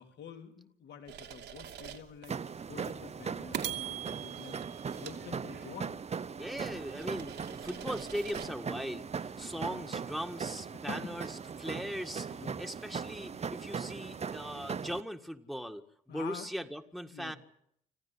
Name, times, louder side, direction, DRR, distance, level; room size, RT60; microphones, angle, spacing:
voice 1, 0.0-4.6 5.0-5.9 9.5-10.0 10.7-11.0 12.3-12.5 16.1-16.5 17.1-17.3, left 7 dB, 65° left, 5 dB, 3.3 m, -48 dB
sound 1, 1.1-2.3 2.8-3.0 3.5-5.9 6.4-8.5, right 10 dB, 70° right, 2.6 m, -43 dB
sound 2, 2.3-15.0, right 6 dB, 35° right, 0.9 m, -39 dB
voice 2, 6.4-17.4, equal, ahead, 5 dB, 1.8 m, -39 dB
26.5 x 15.0 x 10.0 m, 0.72 s
supercardioid pair, 60°, 19 cm